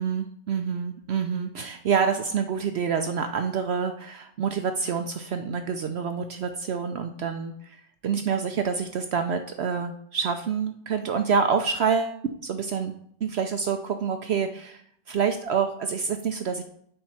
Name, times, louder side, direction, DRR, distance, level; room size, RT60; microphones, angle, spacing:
voice 1, 0.0-12.9 13.2-16.6, right 6 dB, 90° right, 6 dB, 0.5 m, -27 dB
10.0 x 4.3 x 5.7 m, 0.68 s
omnidirectional pair, 1.8 m